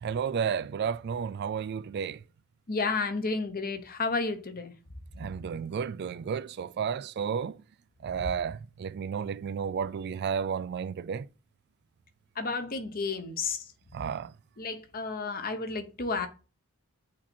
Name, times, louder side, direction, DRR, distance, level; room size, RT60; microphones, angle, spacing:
voice 1, 0.0-2.2 5.2-7.6 8.0-11.3 13.9-14.3, right 7 dB, 50° right, 0.3 m, -32 dB
voice 2, 2.7-4.7 12.4-13.7 14.6-16.3, left 4 dB, 40° left, 0.9 m, -31 dB
8.4 x 2.9 x 4.3 m
head